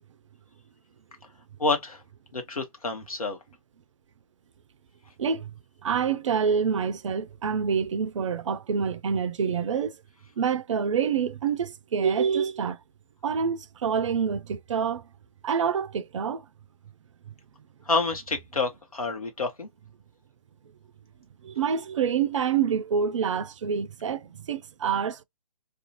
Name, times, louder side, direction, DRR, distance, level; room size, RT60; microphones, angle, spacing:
voice 1, 1.6-2.0 2.3-3.4 17.9-19.7, left 3 dB, 75° left, 1.0 m, -28 dB
voice 2, 5.2-5.5 5.8-10.0 10.4-12.8 13.2-15.0 15.4-16.4 21.4-25.2, right 7 dB, 55° right, 0.4 m, -27 dB
2.5 x 2.3 x 2.8 m
figure-of-eight pair, 125°, 19 cm